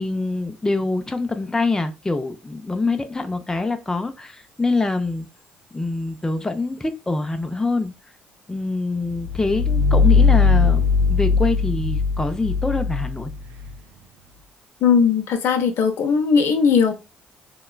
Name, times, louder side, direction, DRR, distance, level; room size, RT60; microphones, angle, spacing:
voice 1, 0.0-5.3 5.7-7.9 8.5-10.8 11.1-13.3, left 3 dB, 10° left, 0.5 m, -25 dB
sound 1, 9.1-13.7, left 4 dB, 65° right, 0.4 m, -19 dB
voice 2, 14.8-16.9, left 6 dB, 55° left, 0.6 m, -18 dB
3.8 x 2.1 x 2.2 m
figure-of-eight pair, 45°, 5 cm